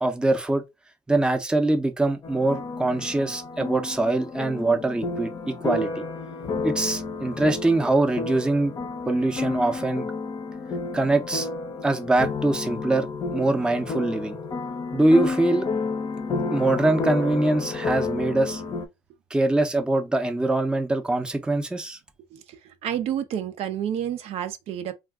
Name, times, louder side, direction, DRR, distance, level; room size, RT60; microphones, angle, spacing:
voice 1, 0.0-0.6 1.1-6.0 6.6-8.7 9.1-10.1 10.9-11.5 11.8-13.1 13.3-14.4 14.9-15.7 16.5-18.6 19.3-22.0, right 2 dB, 5° right, 0.6 m, -23 dB
sound 1, 2.2-18.9, left 4 dB, 35° left, 0.6 m, -31 dB
voice 2, 22.3-24.9, right 10 dB, 60° right, 0.5 m, -30 dB
2.4 x 2.3 x 3.5 m
cardioid pair, 100°, 12 cm